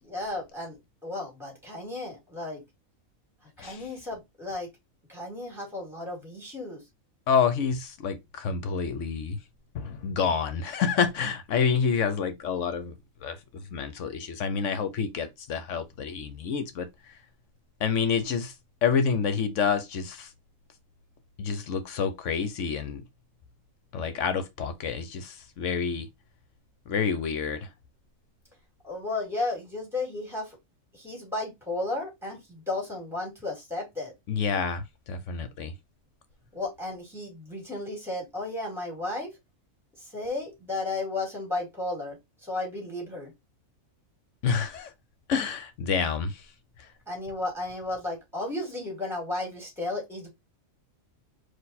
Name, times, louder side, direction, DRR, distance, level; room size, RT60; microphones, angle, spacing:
voice 1, 0.0-2.6 3.4-4.7 5.1-6.8 28.8-30.6 30.9-34.1 36.5-39.3 40.0-43.3 47.1-50.3, left 2 dB, ahead, 2.3 m, -34 dB
voice 2, 7.3-9.4 9.7-12.9 13.2-17.2 17.8-18.5 18.8-20.3 21.4-23.0 23.9-26.1 26.9-27.7 34.3-35.7 44.4-44.9 45.3-46.4, left 6 dB, 65° left, 1.1 m, -28 dB
4.4 x 2.6 x 4.1 m
omnidirectional pair, 1.4 m